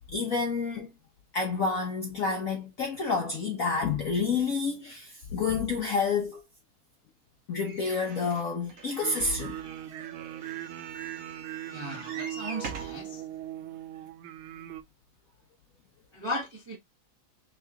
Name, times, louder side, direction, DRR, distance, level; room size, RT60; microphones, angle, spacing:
voice 1, 0.1-0.9 1.3-6.4 7.5-9.7, left 4 dB, 60° left, 0.9 m, -29 dB
sound 1, 7.6-13.0 13.7-13.8 14.1-14.2, right 5 dB, 55° right, 1.0 m, -44 dB
sound 2, 9.0-14.8, right 12 dB, 85° right, 1.4 m, -40 dB
voice 2, 11.7-13.2 14.5-14.7 16.1-16.8, equal, 25° right, 0.6 m, -36 dB
3.7 x 3.1 x 3.4 m
omnidirectional pair, 2.3 m